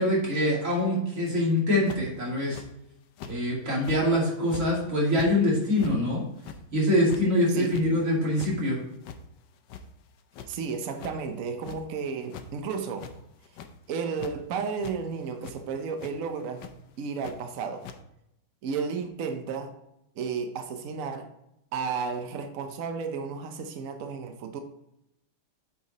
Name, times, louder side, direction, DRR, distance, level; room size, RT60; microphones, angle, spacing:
voice 1, 0.0-2.6 3.3-6.2 6.7-8.8, left 1 dB, 35° right, -4 dB, 2.8 m, -24 dB
sound 1, 1.9-2.2 2.5-2.7 3.2-3.3 3.8-4.0 4.5-4.6 5.0-5.3 5.8-6.0 6.4-6.6 7.0-7.2 7.7-7.9 8.2-8.5 9.0-9.2 9.6-10.1 10.3-10.5 11.0-11.1 11.6-11.8 12.2-12.5 12.9-13.2 13.4-13.7 14.2-14.3 14.8-14.9 15.4-15.6 16.0-16.1 16.6-16.7 17.2-17.3 17.8-18.0, left 7 dB, 70° left, 1.2 m, -41 dB
voice 2, 7.5-7.8 10.5-13.1 13.9-16.6 17.0-17.9 18.6-19.7 20.2-21.3 21.7-24.6, right 5 dB, 75° right, 6 dB, 0.7 m, -33 dB
8.5 x 4.6 x 4.0 m, 0.84 s
omnidirectional pair, 2.3 m